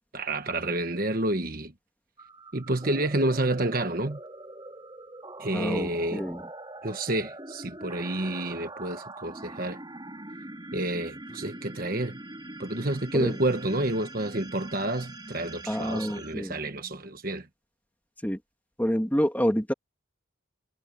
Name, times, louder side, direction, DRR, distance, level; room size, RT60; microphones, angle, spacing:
voice 1, 0.1-1.7 2.5-4.2 5.4-6.2 6.8-9.8 10.7-12.2 12.6-17.4, right 1 dB, 45° right, 1.3 m, -29 dB
sound 1, 2.2-17.3, right 2 dB, 20° right, 4.3 m, -43 dB
voice 2, 5.5-6.4 13.1-13.3 15.7-16.5 18.2-18.4 18.8-19.7, equal, 10° left, 2.6 m, -27 dB
head